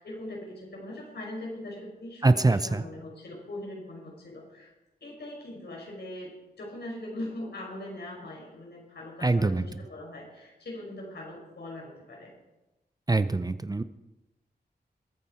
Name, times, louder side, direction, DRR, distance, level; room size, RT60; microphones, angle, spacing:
voice 1, 0.0-4.7 5.0-12.3, left 1 dB, 80° left, -2 dB, 5.4 m, -41 dB
voice 2, 2.2-2.8 9.2-9.6 13.1-13.8, right 3 dB, 20° right, 12 dB, 0.6 m, -23 dB
21.0 x 9.1 x 4.4 m, 1.0 s
wide cardioid pair, 95°, 17 cm